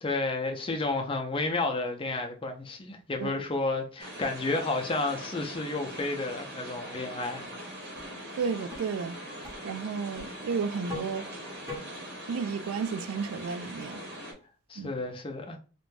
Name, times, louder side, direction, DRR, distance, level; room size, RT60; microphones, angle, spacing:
voice 1, 0.0-7.5 14.7-15.6, left 2 dB, 25° left, 0.5 m, -31 dB
sound 1, 4.0-14.3, equal, 50° right, 1.0 m, -42 dB
sound 2, 8.0-8.1 8.7-8.8 9.4-9.6 10.2-10.3 10.9-11.1 11.7-11.8, left 2 dB, 15° right, 0.9 m, -39 dB
voice 2, 8.4-9.2 9.6-11.3 12.3-14.0 14.8-15.0, right 5 dB, 90° right, 0.3 m, -32 dB
2.6 x 2.2 x 3.1 m
head